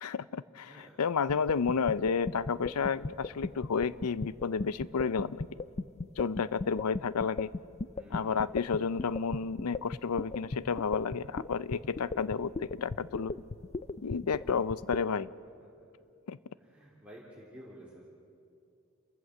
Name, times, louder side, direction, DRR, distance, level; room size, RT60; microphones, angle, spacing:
voice 1, 0.0-5.4 6.2-7.5 8.1-13.3 14.0-15.3 16.3-16.4, left 5 dB, 80° left, 18 dB, 0.5 m, -31 dB
sound 1, 1.3-15.0, left 3 dB, 30° left, 0.5 m, -36 dB
voice 2, 2.9-3.3 7.9-8.5 16.6-18.0, equal, 5° right, -7 dB, 3.4 m, -52 dB
29.5 x 14.0 x 7.9 m, 2.6 s
head